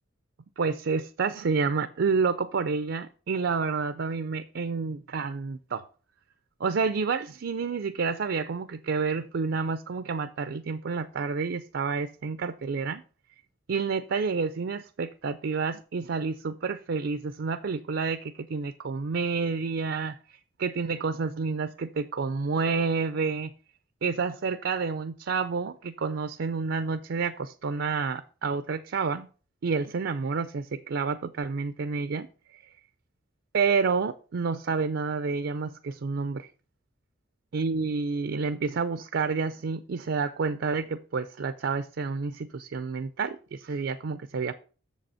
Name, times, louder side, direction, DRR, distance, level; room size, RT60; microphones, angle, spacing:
voice 1, 0.6-5.8 6.6-13.0 13.7-23.5 24.0-29.3 29.6-32.3 32.5-32.6 33.5-36.5 37.5-44.5, right 5 dB, 65° right, 12 dB, 0.4 m, -29 dB
6.9 x 5.2 x 5.5 m, 0.37 s
head